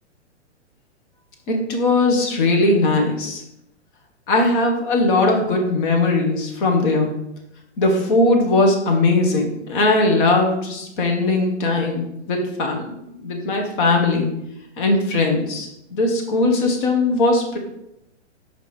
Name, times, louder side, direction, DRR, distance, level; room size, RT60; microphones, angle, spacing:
voice 1, 1.5-3.4 4.3-7.1 7.8-12.9 13.2-14.3 14.8-17.6, left 2 dB, 45° left, 2 dB, 1.7 m, -19 dB
6.2 x 5.3 x 3.4 m, 0.82 s
hypercardioid pair, 120°, 35 cm